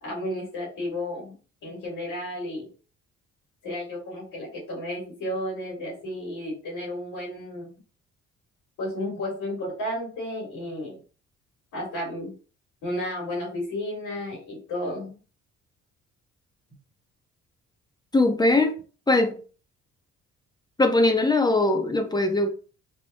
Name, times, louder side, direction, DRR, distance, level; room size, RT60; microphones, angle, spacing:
voice 1, 0.0-1.4 1.6-2.7 3.6-7.7 8.8-11.0 11.7-12.3 12.8-15.2, left 1 dB, 85° left, 1.9 m, -32 dB
voice 2, 18.1-18.7 19.1-19.4 20.8-22.5, left 2 dB, 15° left, 0.6 m, -20 dB
3.5 x 2.2 x 4.0 m
cardioid pair, 90°, 30 cm